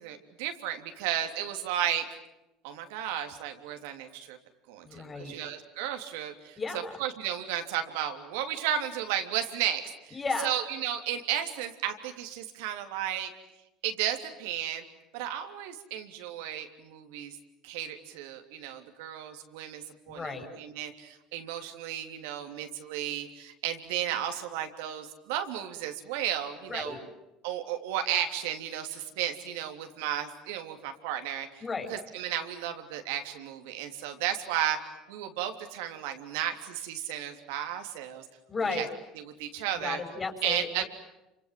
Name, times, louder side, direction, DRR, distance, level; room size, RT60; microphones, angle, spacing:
voice 1, 0.0-2.1 2.6-4.4 4.7-6.6 7.0-13.3 13.8-14.8 15.1-17.4 17.6-27.0 27.4-31.5 31.9-34.8 35.1-38.2 38.7-38.8 39.4-40.0 40.4-40.8, right 10 dB, 85° right, 6 dB, 3.2 m, -33 dB
voice 2, 4.8-5.4 6.6-7.0 10.1-10.5 20.1-20.5 26.7-27.0 31.6-31.9 38.5-38.9 39.8-40.9, left 4 dB, 20° left, 6 dB, 6.1 m, -34 dB
28.5 x 26.0 x 7.7 m, 0.94 s
supercardioid pair, 105°, 0 cm